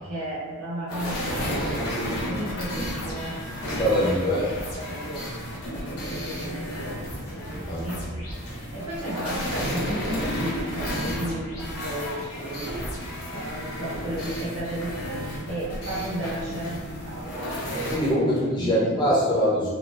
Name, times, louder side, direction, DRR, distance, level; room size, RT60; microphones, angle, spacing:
voice 1, 0.0-1.8 2.1-3.4 4.0-7.0 7.3-7.5 7.7-17.5 18.6-19.0, right 1 dB, 90° right, -8 dB, 1.4 m, -35 dB
sound 1, 0.9-18.1, equal, 85° left, 0.8 m, -32 dB
voice 2, 3.8-4.4 7.7-8.0 17.9-19.7, equal, 20° left, -8 dB, 0.8 m, -23 dB
3.4 x 2.1 x 2.6 m, 1.3 s
head